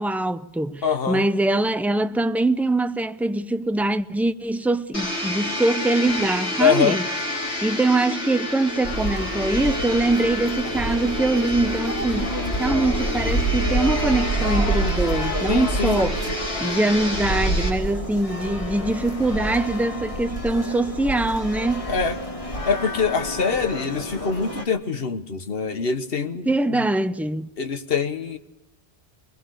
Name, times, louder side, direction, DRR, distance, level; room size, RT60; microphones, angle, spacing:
voice 1, 0.0-7.1 7.6-16.2 16.6-21.9 26.5-27.5, right 2 dB, ahead, 0.4 m, -23 dB
voice 2, 0.8-1.3 6.6-7.0 15.5-16.0 16.3-16.4 21.9-22.2 22.7-26.8 27.6-28.4, left 6 dB, 60° left, 1.5 m, -24 dB
Domestic sounds home sounds, 4.9-17.7, left 1 dB, 85° left, 4.7 m, -29 dB
sound 1, 8.8-24.6, right 1 dB, 30° left, 2.3 m, -28 dB
22.0 x 21.0 x 6.5 m
omnidirectional pair, 1.1 m